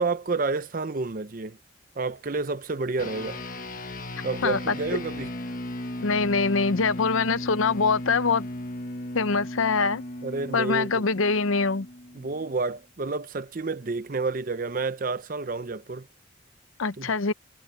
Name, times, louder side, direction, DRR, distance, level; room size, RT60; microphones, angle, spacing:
voice 1, 0.0-1.6 2.0-3.4 4.2-5.3 10.2-11.0 12.1-16.1 17.0-17.3, right 3 dB, 45° right, 0.6 m, -30 dB
sound 1, 3.0-12.6, left 1 dB, 40° left, 1.5 m, -36 dB
voice 2, 4.4-4.7 6.0-8.5 9.1-10.0 10.5-11.9 16.8-17.3, left 4 dB, 85° left, 0.8 m, -24 dB
head